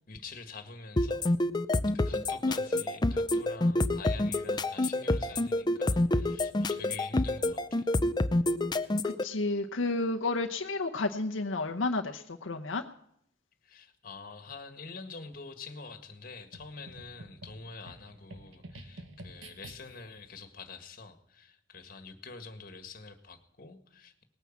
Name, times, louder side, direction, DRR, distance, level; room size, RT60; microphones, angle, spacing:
voice 1, 0.1-1.3 1.9-7.9 13.6-24.2, left 4 dB, 45° left, 8 dB, 1.8 m, -46 dB
sound 1, 1.0-9.2, left 1 dB, 20° left, 0.6 m, -27 dB
voice 2, 9.0-12.8, left 2 dB, 85° left, 3 dB, 0.9 m, -31 dB
sound 2, 16.5-20.2, right 1 dB, 85° right, 1.4 m, -49 dB
19.0 x 9.4 x 7.3 m, 0.71 s
head